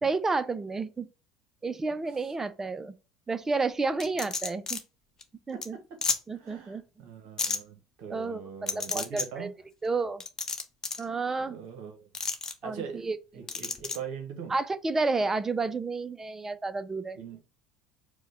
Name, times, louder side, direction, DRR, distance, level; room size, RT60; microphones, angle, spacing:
voice 1, 0.0-1.1 1.6-2.9 3.3-4.8 5.5-5.8 6.3-6.8 8.1-8.4 8.7-9.5 9.8-10.2 11.0-11.6 12.6-13.2 14.5-17.2, right 3 dB, 20° right, 0.4 m, -30 dB
sound 1, 4.0-4.8 5.2-5.3 5.6-5.7 6.0-6.2 7.4-7.6 8.7-9.3 10.2-11.0 12.1-12.5 13.5-14.0, left 4 dB, 25° left, 0.7 m, -31 dB
voice 2, 5.5-6.0 6.3-9.5 11.5-12.1 12.6-14.5 17.1-17.4, right 7 dB, 55° right, 0.9 m, -42 dB
4.7 x 2.2 x 4.1 m
figure-of-eight pair, 65°, 2 cm